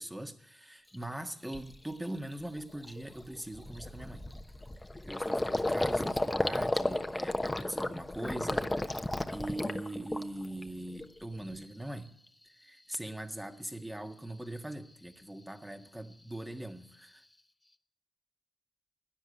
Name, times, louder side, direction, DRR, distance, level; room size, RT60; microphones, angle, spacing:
voice 1, 0.0-4.2 5.0-12.2 12.4-17.2, right 1 dB, 10° right, 6 dB, 1.7 m, -41 dB
Gurgling, 0.9-1.0 1.5-1.8 2.2-2.3 2.6-10.6 11.0-11.6, left 1 dB, 15° left, 1.0 m, -33 dB
13.0 x 9.9 x 8.2 m, 0.68 s
hypercardioid pair, 40°, 0 cm